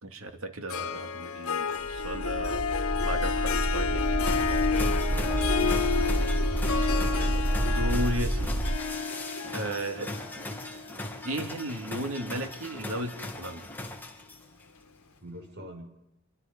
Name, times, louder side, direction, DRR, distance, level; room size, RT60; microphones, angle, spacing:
voice 1, 0.0-2.7 3.0-4.0 7.3-8.6 9.5-10.1 11.2-13.7, right 1 dB, 75° right, 5 dB, 2.4 m, -35 dB
Harp, 0.7-12.1, left 5 dB, 85° left, 1.4 m, -31 dB
sound 1, 1.8-8.8, right 1 dB, 20° right, 0.8 m, -29 dB
sound 2, 4.2-14.6, left 2 dB, 10° left, 2.4 m, -39 dB
voice 2, 5.0-5.8 6.8-7.5 15.2-15.9, right 1 dB, 55° right, 3 dB, 5.5 m, -44 dB
27.5 x 24.0 x 5.3 m, 0.84 s
head